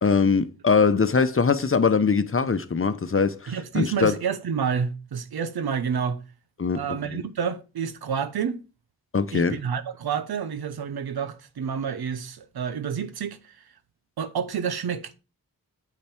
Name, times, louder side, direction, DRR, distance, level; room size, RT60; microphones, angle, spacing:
voice 1, 0.0-4.1 6.6-6.8 7.1-7.2 9.1-9.6, left 5 dB, 35° left, 0.8 m, -22 dB
voice 2, 3.5-6.2 6.7-8.6 9.3-13.5 14.2-15.1, right 7 dB, 85° right, 0.9 m, -29 dB
7.4 x 5.4 x 4.4 m
cardioid pair, 45°, 37 cm